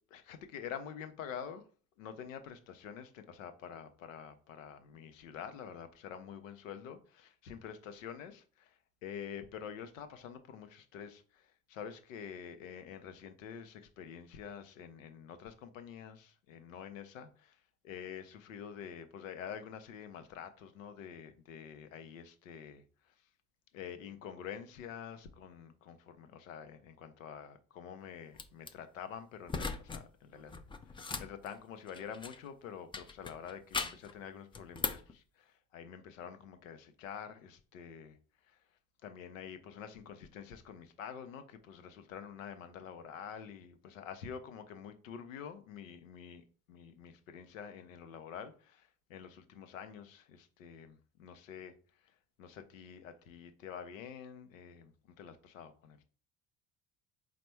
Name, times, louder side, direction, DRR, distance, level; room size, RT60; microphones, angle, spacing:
voice 1, 0.1-1.6 2.0-23.1 23.7-30.5 30.9-38.2 38.5-38.6 39.0-51.7 52.4-56.0, left 8 dB, 85° left, 0.6 m, -47 dB
sound 1, 28.3-28.7 29.5-30.0 30.3-32.5 32.9-34.1 34.5-35.1, left 4 dB, 15° left, 0.4 m, -39 dB
4.2 x 2.1 x 4.4 m
hypercardioid pair, 60°, 39 cm